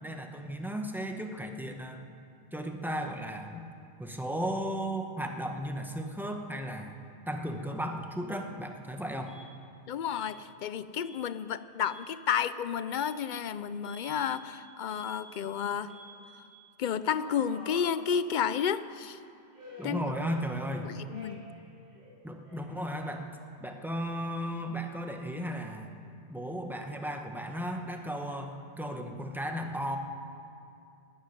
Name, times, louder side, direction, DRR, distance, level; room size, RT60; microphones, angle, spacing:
voice 1, 0.0-2.0 2.5-3.6 4.0-7.0 7.3-9.3 19.8-20.9 22.2-23.3 23.6-25.9 26.3-30.0, equal, ahead, 4 dB, 1.0 m, -35 dB
Alarm, 9.3-9.5 10.1-10.4 11.0-11.2 11.7-12.1 12.9-13.1 13.8-14.4 14.9-15.4 15.9-16.4 17.0-18.6 19.5-20.7 21.1-21.6 21.9-23.6, equal, 45° right, 2.5 m, -50 dB
voice 2, 9.9-15.9 16.8-19.2 19.8-20.0 20.8-21.4, left 8 dB, 60° left, 15 dB, 0.6 m, -31 dB
13.0 x 10.0 x 9.7 m, 2.5 s
omnidirectional pair, 1.0 m